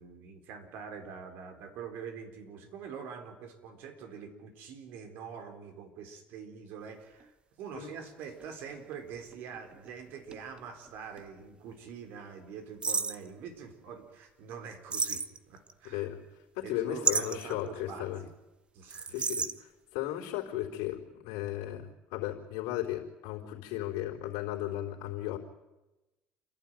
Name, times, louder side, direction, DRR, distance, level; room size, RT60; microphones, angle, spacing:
voice 1, 0.0-7.3 7.6-16.1 16.6-18.3 18.7-19.1, right 6 dB, 70° right, 6 dB, 4.0 m, -45 dB
sound 1, 7.2-7.3 8.2-10.9 11.2-11.3 12.8-13.3 14.9-15.7 17.0-17.5 18.9-19.6, right 5 dB, 30° right, 1.1 m, -32 dB
voice 2, 15.8-16.2 16.5-18.2 19.1-25.4, left 13 dB, 80° left, -2 dB, 3.8 m, -35 dB
29.0 x 12.0 x 9.0 m, 1.1 s
supercardioid pair, 95°, 4 cm